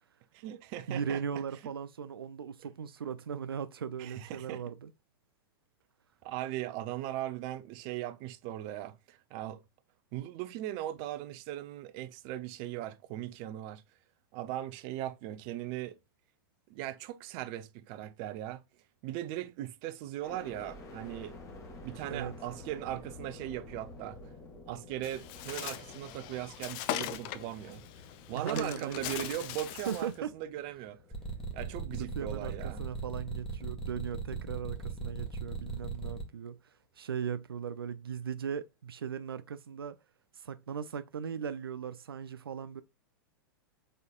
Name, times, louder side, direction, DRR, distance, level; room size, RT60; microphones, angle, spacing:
voice 1, 0.3-1.2 4.0-4.6 6.2-9.6 10.1-13.8 14.3-16.0 16.7-18.6 19.0-21.4 21.8-24.2 24.7-27.8 28.3-31.0 31.5-32.8, right 13 dB, 45° right, 0.6 m, -39 dB
voice 2, 0.9-4.9 22.1-22.3 28.3-29.1 29.9-30.3 31.9-40.0 40.3-42.8, right 7 dB, 85° right, 0.4 m, -38 dB
sound 1, 20.2-34.2 34.7-35.5, left 2 dB, 25° left, 1.7 m, -51 dB
Bird, 25.0-30.1, left 12 dB, 45° left, 0.6 m, -40 dB
sound 2, 31.1-36.2, right 3 dB, 5° left, 1.4 m, -38 dB
5.0 x 3.9 x 2.3 m
hypercardioid pair, 105°, 12 cm